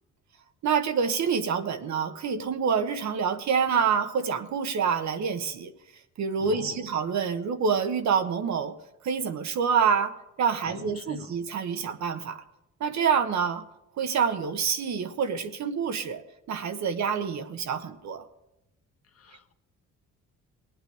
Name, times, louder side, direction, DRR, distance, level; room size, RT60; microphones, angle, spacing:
voice 1, 0.6-5.7 6.2-8.7 9.0-10.1 10.4-12.4 12.8-13.6 14.0-18.2, right 6 dB, 65° right, 8 dB, 1.2 m, -27 dB
voice 2, 6.4-6.9 10.6-11.3 19.1-19.5, left 6 dB, 50° left, 6 dB, 1.3 m, -43 dB
19.0 x 9.1 x 3.5 m, 0.90 s
cardioid pair, 90°, 30 cm